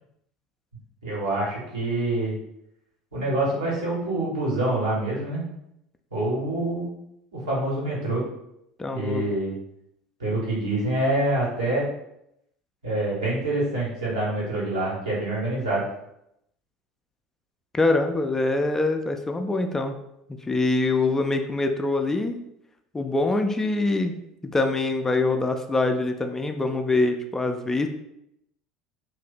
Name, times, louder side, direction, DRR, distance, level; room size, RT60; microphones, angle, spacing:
voice 1, 1.0-2.4 3.1-5.5 6.1-6.9 7.5-8.2 8.9-9.5 10.2-11.8 12.8-15.8, right 2 dB, 80° right, -7 dB, 1.5 m, -26 dB
voice 2, 8.8-9.2 17.7-20.0 20.5-22.4 22.9-24.2 24.4-27.9, left 2 dB, 15° left, 5 dB, 0.4 m, -24 dB
2.8 x 2.6 x 4.0 m, 0.80 s
figure-of-eight pair, 70°, 3 cm